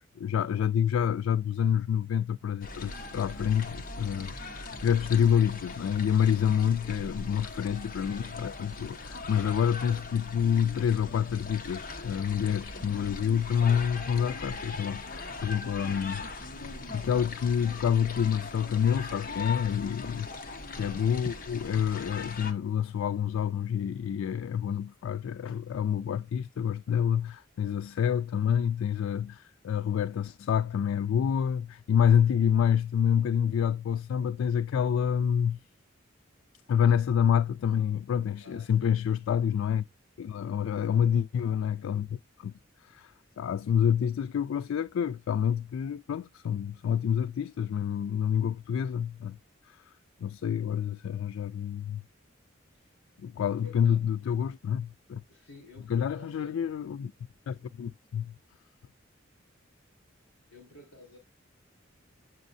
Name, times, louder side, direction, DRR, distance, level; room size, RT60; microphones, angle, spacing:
voice 1, 0.0-16.3 16.7-20.3 20.7-35.6 36.7-39.8 40.2-42.5 42.8-49.4 49.7-49.8 50.2-52.0 53.2-55.2 55.9-57.1 57.5-58.4, left 8 dB, 90° left, 0.3 m, -28 dB
sound 1, 2.6-22.5, left 3 dB, 45° left, 1.1 m, -40 dB
voice 2, 38.4-38.9 40.4-40.8 52.7-52.9 53.4-54.0 55.3-56.6 60.5-61.2, left 2 dB, 75° left, 4.7 m, -52 dB
8.0 x 6.3 x 2.6 m
head